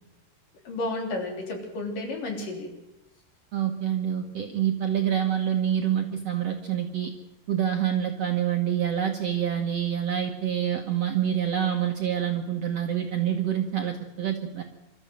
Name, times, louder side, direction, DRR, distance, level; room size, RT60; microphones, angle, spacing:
voice 1, 0.6-2.7, left 2 dB, 60° left, 2 dB, 5.0 m, -32 dB
voice 2, 3.5-7.1 7.5-14.6, right 9 dB, 55° right, 3 dB, 1.9 m, -27 dB
27.0 x 13.5 x 7.7 m, 0.96 s
omnidirectional pair, 4.3 m